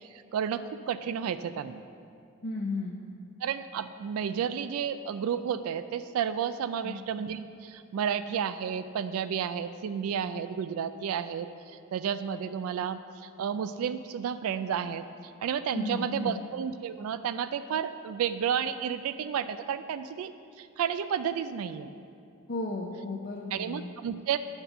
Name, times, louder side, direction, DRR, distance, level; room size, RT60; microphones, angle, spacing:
voice 1, 0.0-1.8 3.4-20.3 20.6-21.9 23.5-24.4, right 8 dB, 75° right, 12 dB, 0.3 m, -32 dB
voice 2, 2.4-3.0 6.8-7.0 15.7-16.4 22.5-23.9, left 2 dB, 45° left, -2 dB, 0.6 m, -34 dB
9.8 x 4.4 x 6.6 m, 2.5 s
head